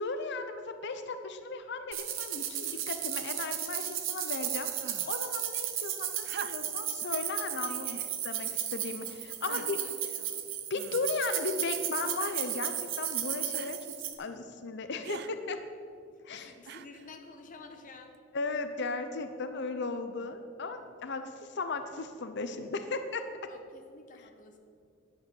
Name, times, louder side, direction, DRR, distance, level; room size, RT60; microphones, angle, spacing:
voice 1, 0.0-4.7 5.1-7.9 8.2-9.8 10.7-15.6 16.2-16.5 18.3-23.3, left 3 dB, 60° left, 8 dB, 0.7 m, -36 dB
sound 1, 1.9-14.1, right 11 dB, 75° right, 1.1 m, -35 dB
sound 2, 4.8-5.3 6.2-6.9 7.9-8.2 8.9-9.0 9.5-9.9 10.7-11.3 12.2-12.6 13.5-13.8 15.0-15.3 16.6-17.1 18.1-18.2, right 7 dB, 55° right, 0.4 m, -44 dB
voice 2, 7.6-8.0 9.5-10.4 16.3-18.1 23.5-24.6, left 3 dB, 45° left, 4 dB, 1.1 m, -50 dB
10.5 x 8.5 x 7.0 m, 2.4 s
head